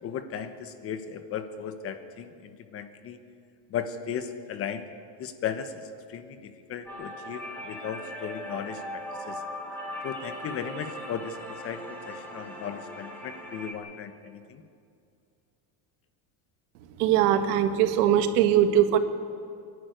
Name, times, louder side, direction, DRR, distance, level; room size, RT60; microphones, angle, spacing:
voice 1, 0.0-3.2 3.7-4.9 5.2-9.4 10.0-14.6, left 7 dB, 30° left, 10 dB, 1.1 m, -36 dB
sound 1, 6.9-13.7, equal, 5° left, 3.1 m, -39 dB
voice 2, 17.0-19.0, right 10 dB, 90° right, 9 dB, 1.7 m, -21 dB
25.0 x 11.5 x 9.3 m, 2.4 s
cardioid pair, 165°, 44 cm